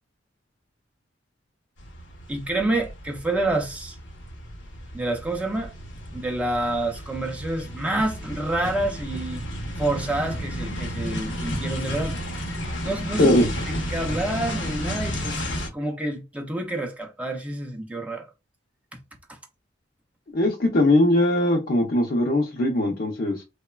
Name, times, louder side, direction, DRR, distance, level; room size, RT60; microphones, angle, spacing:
sound 1, 1.8-15.7, equal, 80° left, 0.8 m, -32 dB
voice 1, 2.3-4.0 4.9-5.7 6.1-9.4 9.8-12.2 12.8-13.4 13.9-15.4 15.7-18.2 19.3-19.4, right 2 dB, 5° right, 0.4 m, -28 dB
voice 2, 13.2-13.5 20.3-23.4, left 1 dB, 50° left, 0.5 m, -20 dB
3.0 x 2.1 x 2.2 m
head